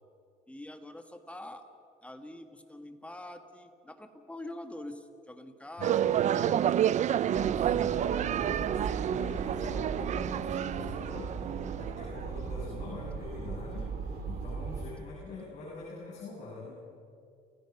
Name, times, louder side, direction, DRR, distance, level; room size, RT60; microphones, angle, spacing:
voice 1, 0.5-1.7 2.0-6.6, left 1 dB, 5° left, 6 dB, 1.8 m, -45 dB
voice 2, 5.8-6.5 7.2-16.8, left 3 dB, 45° left, -6 dB, 6.9 m, -44 dB
sound 1, 5.8-12.4, right 10 dB, 45° right, 0.5 m, -29 dB
sound 2, 7.3-14.9, right 5 dB, 65° right, 3.6 m, -38 dB
30.0 x 16.0 x 6.0 m, 2.5 s
cardioid pair, 110°, 17 cm